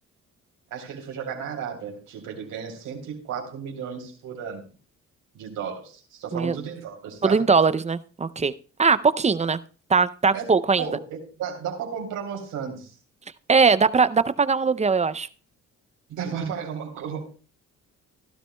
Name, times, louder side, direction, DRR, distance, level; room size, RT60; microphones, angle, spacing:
voice 1, 0.7-4.6 5.3-7.4 10.3-10.5 10.8-12.9 16.1-17.3, right 7 dB, 85° right, 1 dB, 3.7 m, -34 dB
voice 2, 7.2-8.5 8.8-9.6 9.9-10.9 13.5-15.3, right 5 dB, 25° right, 15 dB, 0.5 m, -20 dB
16.5 x 12.5 x 2.2 m, 0.37 s
cardioid pair, 90°, 30 cm